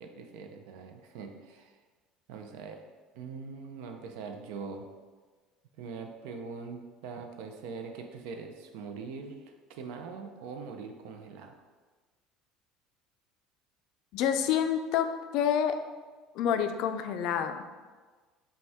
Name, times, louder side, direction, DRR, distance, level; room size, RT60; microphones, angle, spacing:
voice 1, 0.0-1.7 2.3-2.8 3.2-4.8 5.8-11.6, right 5 dB, 75° right, 5 dB, 0.5 m, -42 dB
voice 2, 14.1-15.8 16.3-17.8, left 8 dB, 60° left, 7 dB, 0.3 m, -28 dB
5.1 x 2.3 x 3.5 m, 1.4 s
cardioid pair, 140°, 0 cm